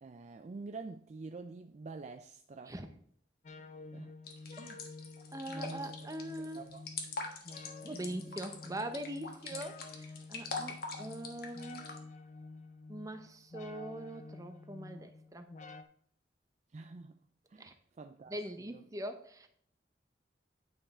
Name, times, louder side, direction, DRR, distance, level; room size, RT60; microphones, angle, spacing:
voice 1, 0.0-2.7 3.9-4.1 4.6-4.8 5.5-6.1 6.4-6.8 7.9-8.1 16.7-17.2 17.5-18.8, right 3 dB, 40° right, 0.4 m, -47 dB
Flutter wave melody, 3.4-15.8, left 3 dB, 40° left, 0.6 m, -50 dB
sound 1, 4.3-12.0, left 4 dB, 55° left, 1.4 m, -43 dB
voice 2, 5.3-6.6 7.8-11.9 12.9-15.5 17.6-17.7 18.3-19.5, right 1 dB, 20° right, 0.9 m, -42 dB
9.5 x 5.5 x 4.3 m
head